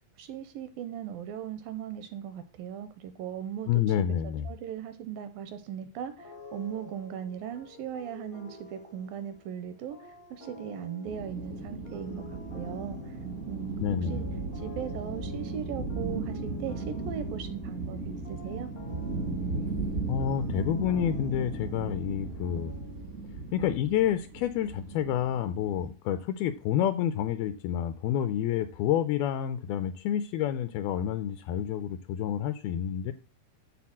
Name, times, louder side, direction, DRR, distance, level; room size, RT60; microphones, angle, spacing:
voice 1, 0.2-3.7 4.5-13.2 13.5-14.2 14.5-18.7, right 9 dB, 80° right, 10 dB, 2.2 m, -38 dB
voice 2, 3.7-4.5 13.8-14.2 20.1-22.7 23.5-33.1, left 10 dB, 80° left, 11 dB, 2.3 m, -29 dB
sound 1, 6.2-23.3, left 2 dB, 65° left, 0.5 m, -49 dB
sound 2, 11.1-25.9, right 3 dB, 65° right, 0.7 m, -36 dB
11.5 x 3.9 x 7.4 m, 0.37 s
omnidirectional pair, 4.7 m